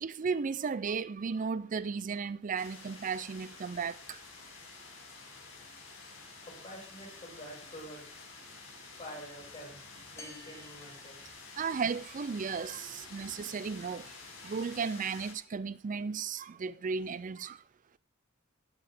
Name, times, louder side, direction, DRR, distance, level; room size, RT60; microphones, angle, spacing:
voice 1, 0.0-4.2 11.6-14.1 14.4-17.6, right 5 dB, 40° right, 0.4 m, -35 dB
sound 1, 2.6-15.3, left 4 dB, 70° left, 2.5 m, -50 dB
voice 2, 6.4-8.1 9.0-9.8 10.1-11.4 13.2-13.3, equal, 35° left, 5.1 m, -47 dB
sound 2, 10.2-11.9, left 2 dB, 15° left, 0.8 m, -53 dB
18.0 x 6.1 x 3.6 m
head